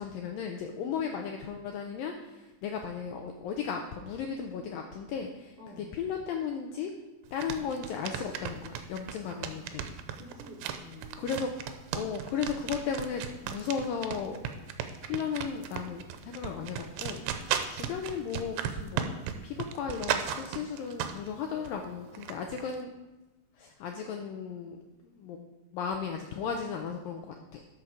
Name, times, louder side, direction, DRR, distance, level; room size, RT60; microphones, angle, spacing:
voice 1, 0.0-6.9 7.3-10.0 11.2-11.5 11.9-22.9 23.6-27.7, left 6 dB, 80° left, 3 dB, 2.0 m, -36 dB
voice 2, 5.6-5.9 9.2-11.3, equal, 60° right, -5 dB, 2.7 m, -50 dB
sound 1, 7.3-21.3 21.7-22.8, right 9 dB, 90° right, 2.8 m, -35 dB
13.0 x 6.7 x 4.9 m, 1.1 s
omnidirectional pair, 4.9 m